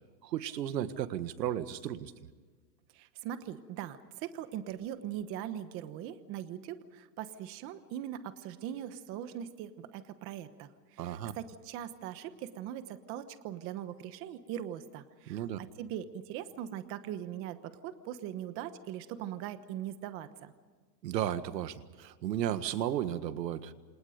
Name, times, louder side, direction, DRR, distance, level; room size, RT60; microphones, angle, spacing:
voice 1, 0.2-2.1 11.0-11.3 15.3-15.6 21.0-23.7, right 11 dB, 85° right, 12 dB, 1.8 m, -34 dB
voice 2, 2.9-20.5, right 11 dB, 25° right, 11 dB, 1.1 m, -41 dB
28.0 x 28.0 x 5.1 m, 1.5 s
supercardioid pair, 165°, 49 cm